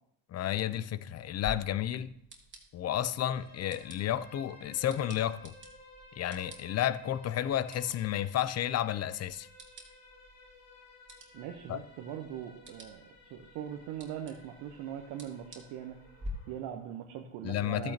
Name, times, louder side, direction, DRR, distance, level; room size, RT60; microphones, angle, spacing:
voice 1, 0.3-2.1 2.7-5.5 6.2-9.5 11.7-11.8 17.4-17.9, left 11 dB, 35° left, 0.6 m, -32 dB
sound 1, 1.4-16.3, equal, 25° right, 2.6 m, -51 dB
sound 2, 3.3-16.6, left 1 dB, 85° left, 2.7 m, -56 dB
voice 2, 11.3-16.0 16.5-17.9, right 10 dB, 65° right, 1.1 m, -41 dB
14.0 x 8.4 x 2.9 m
hypercardioid pair, 65°, 42 cm